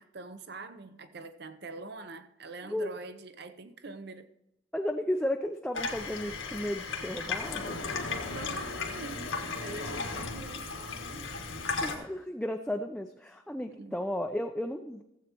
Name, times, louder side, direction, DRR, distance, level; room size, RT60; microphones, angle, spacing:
voice 1, 0.0-4.3 8.1-11.3 11.6-12.0 13.8-14.0, right 3 dB, 55° right, 0.7 m, -44 dB
voice 2, 4.7-7.8 11.8-15.0, left 1 dB, 5° left, 0.4 m, -34 dB
Water tap faucet / Sink (filling or washing), 5.7-11.9, left 4 dB, 80° left, 1.6 m, -35 dB
16.0 x 8.2 x 3.0 m
head